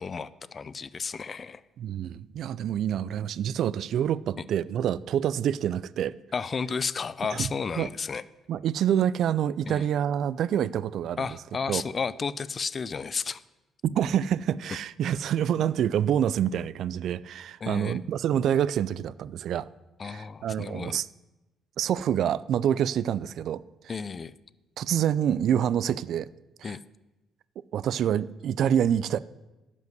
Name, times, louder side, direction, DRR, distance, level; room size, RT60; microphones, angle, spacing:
voice 1, 0.0-1.6 6.3-8.2 9.7-9.9 11.2-13.4 17.6-18.0 20.0-21.0 23.9-24.3 26.6-26.8, left 5 dB, 40° left, 18 dB, 0.5 m, -32 dB
voice 2, 1.8-6.2 7.3-7.5 7.8-7.9 8.5-11.4 11.7-11.8 13.8-19.7 20.0-21.1 21.8-23.6 24.8-26.3 26.6-26.8 27.6-29.2, right 9 dB, 70° right, 19 dB, 0.3 m, -27 dB
12.0 x 5.4 x 7.9 m, 1.1 s
supercardioid pair, 80°, 0 cm